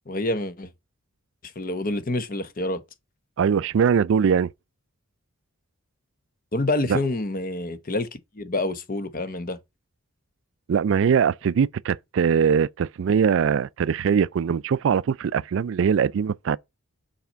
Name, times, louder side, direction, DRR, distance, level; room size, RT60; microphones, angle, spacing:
voice 1, 0.1-0.7 1.6-2.8 6.5-8.1 8.3-9.6, left 2 dB, 40° left, 0.8 m, -27 dB
voice 2, 3.4-4.5 6.9-7.0 10.7-16.6, right 7 dB, 60° right, 0.3 m, -21 dB
5.8 x 4.2 x 6.2 m
head